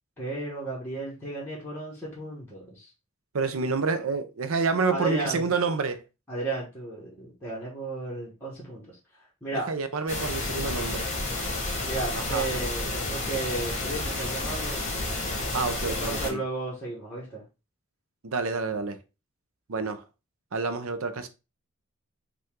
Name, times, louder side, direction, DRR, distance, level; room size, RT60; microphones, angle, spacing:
voice 1, 0.2-2.9 4.9-5.4 6.3-8.8 9.4-9.7 11.8-14.8 15.7-17.4, right 2 dB, 10° left, 1.5 m, -34 dB
voice 2, 3.3-6.0 9.7-11.1 12.1-12.5 15.5-16.4 18.2-19.0 19.7-20.0 20.5-21.3, right 4 dB, 75° right, 0.7 m, -28 dB
sound 1, 10.1-16.3, left 2 dB, 35° left, 1.3 m, -30 dB
5.4 x 2.6 x 3.5 m
head